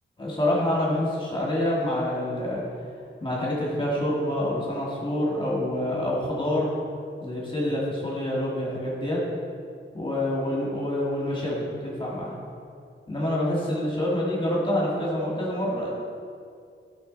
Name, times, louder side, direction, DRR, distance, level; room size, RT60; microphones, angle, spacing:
voice 1, 0.2-2.6 3.2-6.7 7.2-9.2 9.9-12.3 13.1-15.9, left 1 dB, 25° left, -5 dB, 2.0 m, -27 dB
13.5 x 6.3 x 4.1 m, 2.4 s
wide cardioid pair, 135°, 21 cm